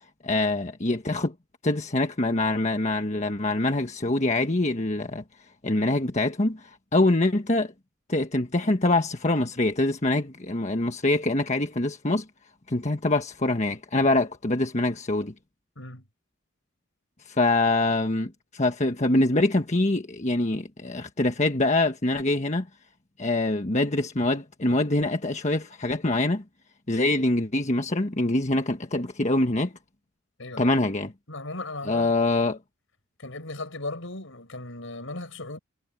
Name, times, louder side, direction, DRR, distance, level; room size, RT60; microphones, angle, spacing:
voice 1, 0.2-1.3 1.6-5.2 5.6-7.7 8.1-12.3 12.7-15.3 17.2-22.7 23.2-26.4 26.9-29.7 30.6-31.1 31.9-32.6, left 2 dB, 35° left, 1.4 m, -24 dB
voice 2, 30.4-30.8 31.3-32.2 33.2-35.6, left 2 dB, 70° left, 5.8 m, -37 dB
head